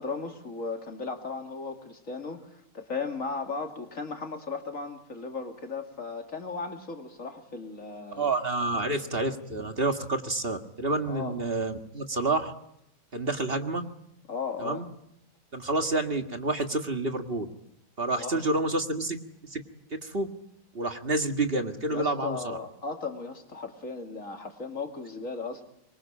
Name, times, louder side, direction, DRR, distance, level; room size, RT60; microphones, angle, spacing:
voice 1, 0.0-8.3 11.1-11.4 14.3-14.8 18.1-18.4 21.9-25.6, left 4 dB, 70° left, 4 dB, 3.0 m, -36 dB
voice 2, 8.1-12.5 13.1-13.8 14.6-14.8 15.5-17.5 18.0-19.2 19.4-19.6 19.9-20.3 20.7-22.6, right 2 dB, 45° right, 5 dB, 2.0 m, -29 dB
25.5 x 23.0 x 8.8 m, 0.79 s
omnidirectional pair, 1.4 m